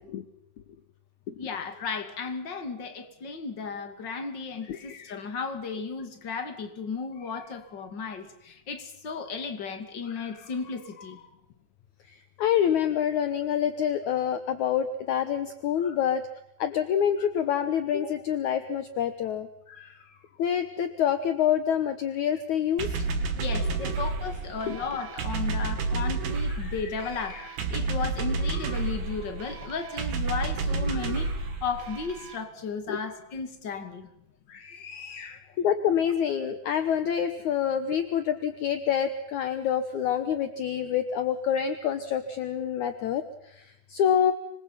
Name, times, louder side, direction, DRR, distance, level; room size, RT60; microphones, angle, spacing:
voice 1, 1.4-11.3 15.8-16.0 19.7-20.2 22.9-23.0 23.4-34.1 34.5-35.5, left 5 dB, 30° left, 8 dB, 2.4 m, -35 dB
voice 2, 12.4-16.2 16.6-19.5 20.4-23.0 24.7-24.8 32.9-33.0 35.6-44.3, left 9 dB, 70° left, 10 dB, 1.9 m, -26 dB
sound 1, 22.8-32.4, right 3 dB, 70° right, 4.3 m, -30 dB
26.5 x 23.5 x 5.7 m, 0.79 s
omnidirectional pair, 5.0 m